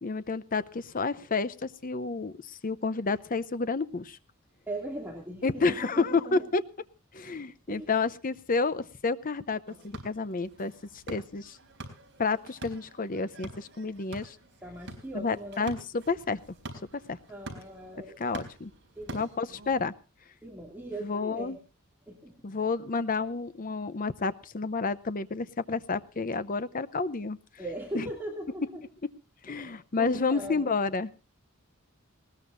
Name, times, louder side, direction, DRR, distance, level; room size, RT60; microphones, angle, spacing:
voice 1, 0.0-4.2 5.4-6.6 7.1-10.7 11.1-11.6 12.2-14.4 15.1-16.4 17.1-17.2 18.2-18.7 19.1-19.9 21.0-21.6 22.4-27.4 27.9-28.0 29.4-31.1, left 4 dB, 40° left, 14 dB, 0.7 m, -30 dB
voice 2, 4.7-6.5 7.7-7.9 14.6-15.7 17.3-18.2 19.0-19.3 20.4-21.6 22.1-22.3 27.6-28.8 29.5-29.7 30.0-30.7, right 1 dB, 10° right, -1 dB, 2.5 m, -39 dB
sound 1, 9.7-19.8, right 1 dB, 55° right, 4.0 m, -46 dB
20.0 x 19.0 x 2.6 m, 0.32 s
head